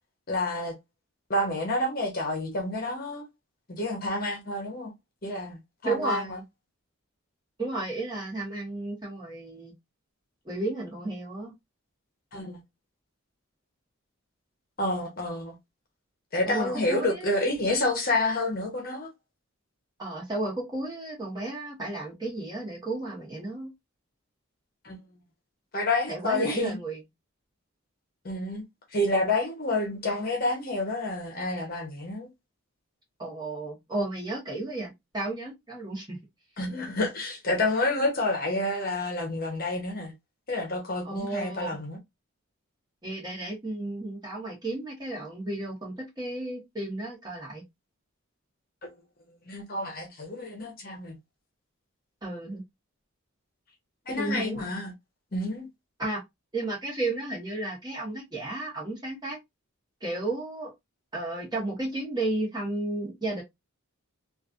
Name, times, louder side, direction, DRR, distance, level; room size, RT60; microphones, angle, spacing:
voice 1, 0.3-0.7 1.3-3.3 3.7-4.9 5.2-6.2 12.3-12.6 14.8-15.6 16.3-19.1 24.8-25.0 25.7-26.8 28.2-28.6 28.9-32.3 36.6-40.1 40.5-42.0 48.8-48.9 49.5-51.2 54.1-54.9 55.3-55.7, left 2 dB, 40° left, 0.9 m, -29 dB
voice 2, 5.8-6.4 7.6-9.7 10.4-11.5 16.5-17.3 20.0-23.7 26.1-27.0 33.2-36.2 41.0-41.7 43.0-47.6 52.2-52.6 54.2-54.7 56.0-56.2 56.5-59.4 60.0-60.7 61.1-63.4, right 2 dB, 20° right, 1.3 m, -33 dB
3.1 x 2.5 x 2.5 m
head